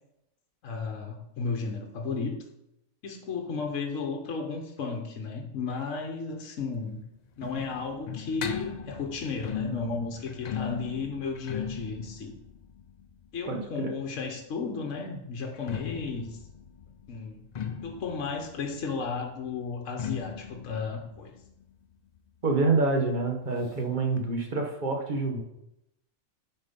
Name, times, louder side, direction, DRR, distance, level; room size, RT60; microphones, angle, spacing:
voice 1, 0.6-2.4 3.0-7.0 7.4-12.3 13.3-16.4 17.1-17.4 17.8-21.3, left 4 dB, 65° left, 2 dB, 1.3 m, -34 dB
sound 1, 6.6-14.3 15.4-22.8 23.1-23.2 23.4-23.5 24.2-24.3, left 7 dB, 85° left, 0.3 m, -39 dB
voice 2, 13.5-13.9 22.4-25.4, right 3 dB, 35° right, 3 dB, 1.2 m, -27 dB
7.5 x 4.6 x 5.2 m, 0.84 s
omnidirectional pair, 1.4 m